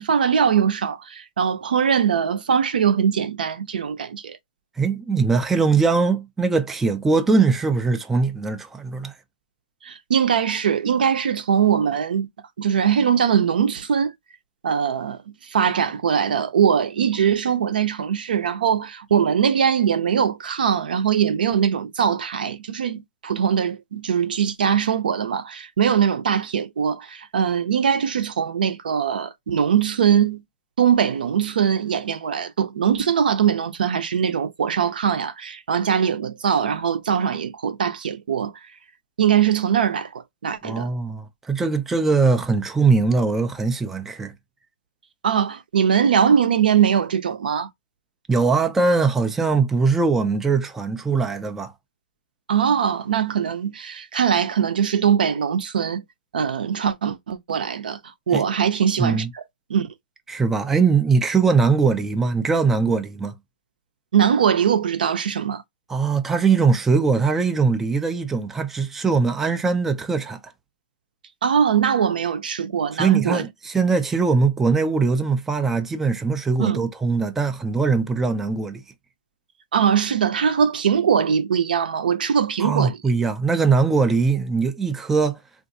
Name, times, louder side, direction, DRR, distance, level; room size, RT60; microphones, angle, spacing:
voice 1, 0.0-4.4 9.8-12.3 12.6-14.1 14.6-30.4 30.8-38.5 39.2-40.9 45.2-47.7 52.5-56.0 56.3-58.0 58.3-59.2 59.7-59.9 64.1-65.6 71.4-73.4 76.6-76.8 79.7-83.0, right 8 dB, 75° right, 0.6 m, -21 dB
voice 2, 4.8-9.1 40.6-44.3 48.3-51.7 58.3-58.5 59.0-59.3 60.3-63.3 65.9-70.5 72.9-78.8 82.6-85.4, right 4 dB, 5° right, 0.3 m, -21 dB
3.6 x 2.5 x 2.6 m
hypercardioid pair, 150°, 5 cm